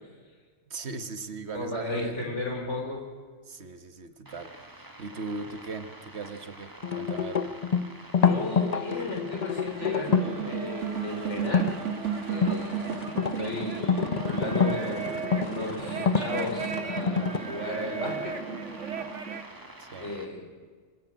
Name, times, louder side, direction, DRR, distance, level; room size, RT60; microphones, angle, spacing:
voice 1, 0.7-2.2 3.5-7.5 19.8-20.1, right 4 dB, 65° right, 10 dB, 1.6 m, -38 dB
voice 2, 1.5-3.1 8.2-11.7 12.3-12.9 13.4-14.0 14.2-18.3 20.0-20.6, left 2 dB, 80° left, 0 dB, 5.2 m, -34 dB
sound 1, 4.2-20.2, right 1 dB, 15° right, 1.8 m, -48 dB
sound 2, 6.8-10.4 11.4-11.7 12.2-17.4, left 6 dB, 40° left, 0.9 m, -27 dB
sound 3, 9.6-19.5, right 6 dB, 90° right, 1.9 m, -34 dB
25.0 x 15.5 x 8.8 m, 1.5 s
omnidirectional pair, 1.2 m